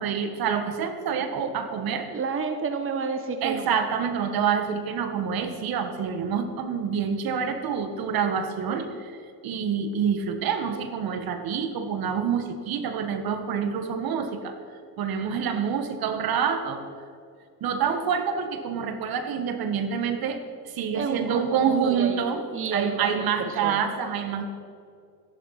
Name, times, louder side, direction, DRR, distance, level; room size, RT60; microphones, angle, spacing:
voice 1, 0.0-2.1 3.4-9.2 9.4-14.5 15.0-16.8 17.6-22.4 22.7-24.5, right 7 dB, 65° right, 8 dB, 1.7 m, -27 dB
voice 2, 2.1-3.7 20.9-22.2 22.5-23.2 23.6-23.8, right 5 dB, 30° right, 7 dB, 1.2 m, -30 dB
14.5 x 11.5 x 5.9 m, 2.3 s
cardioid pair, 100°, 39 cm